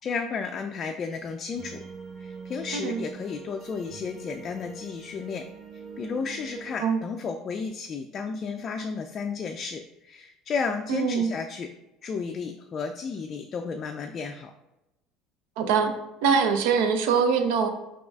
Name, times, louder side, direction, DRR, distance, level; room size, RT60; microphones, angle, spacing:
voice 1, 0.0-1.8 2.2-5.5 5.7-11.7 12.0-14.5, left 5 dB, 45° left, 5 dB, 0.3 m, -33 dB
sound 1, 1.6-6.8, right 5 dB, 40° right, 0.8 m, -43 dB
voice 2, 10.9-11.3 15.6-15.9 16.2-17.7, right 6 dB, 70° right, 7 dB, 0.5 m, -23 dB
4.7 x 3.8 x 2.3 m, 0.95 s
hypercardioid pair, 70°, 0 cm